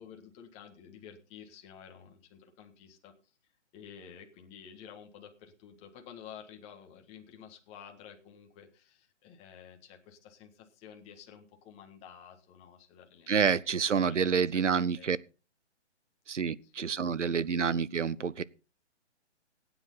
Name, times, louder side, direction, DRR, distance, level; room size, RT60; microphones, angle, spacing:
voice 1, 0.0-3.4 3.7-15.2 16.6-17.4, left 8 dB, 20° left, 1.6 m, -52 dB
voice 2, 13.3-15.2 16.3-18.4, right 6 dB, 80° right, 0.8 m, -28 dB
17.0 x 9.2 x 4.0 m
figure-of-eight pair, 140°, 36 cm